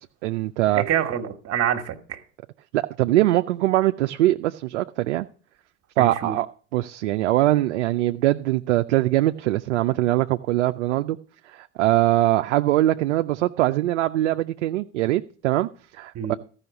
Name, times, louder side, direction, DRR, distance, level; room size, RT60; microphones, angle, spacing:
voice 1, 0.2-0.8 2.7-5.3 6.0-6.5 6.7-11.2 11.5-16.3, right 15 dB, 85° right, 0.5 m, -22 dB
voice 2, 0.7-2.2 6.0-6.4 16.1-16.4, right 10 dB, 45° right, 1.4 m, -26 dB
13.5 x 5.6 x 6.9 m
hypercardioid pair, 80°, 35 cm